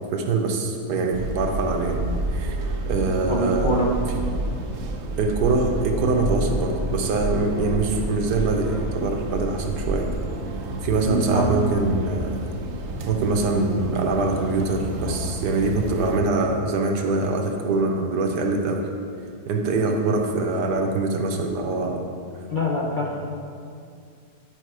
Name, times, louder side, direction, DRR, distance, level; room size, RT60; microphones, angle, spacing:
voice 1, 0.1-2.0 2.3-2.6 2.9-3.7 5.2-10.1 10.8-12.4 13.1-18.8 19.5-22.0, right 3 dB, 80° right, 3 dB, 1.4 m, -24 dB
sound 1, 1.1-16.2, right 2 dB, 60° right, 0.8 m, -29 dB
voice 2, 2.9-3.9 11.1-11.5 22.5-23.2, left 1 dB, 45° left, -4 dB, 0.6 m, -25 dB
10.5 x 4.6 x 4.8 m, 2.3 s
omnidirectional pair, 1.7 m